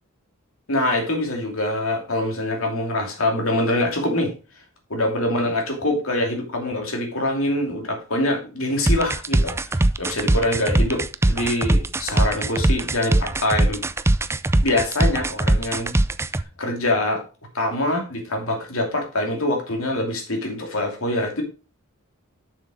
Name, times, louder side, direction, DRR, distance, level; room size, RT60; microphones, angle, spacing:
voice 1, 0.7-4.3 4.9-13.8 14.6-15.9 16.6-17.2 17.5-21.4, left 1 dB, 75° left, 2 dB, 2.7 m, -24 dB
sound 1, 8.9-16.4, right 1 dB, 10° right, 0.3 m, -20 dB
7.0 x 6.0 x 4.9 m, 0.34 s
head